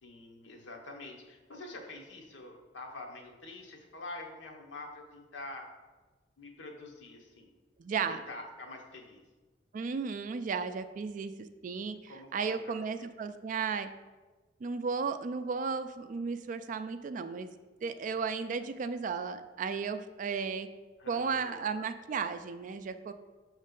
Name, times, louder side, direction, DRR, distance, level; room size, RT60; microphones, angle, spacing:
voice 1, 0.0-5.7 6.4-7.5 8.1-9.2 12.1-12.7 13.0-13.1 21.0-21.6, left 2 dB, 80° left, 1 dB, 1.0 m, -46 dB
voice 2, 7.8-8.2 9.7-11.3 11.6-13.9 14.6-17.5 17.8-20.7 21.1-23.1, right 5 dB, 45° right, 10 dB, 0.3 m, -34 dB
6.4 x 3.2 x 5.2 m, 1.3 s
head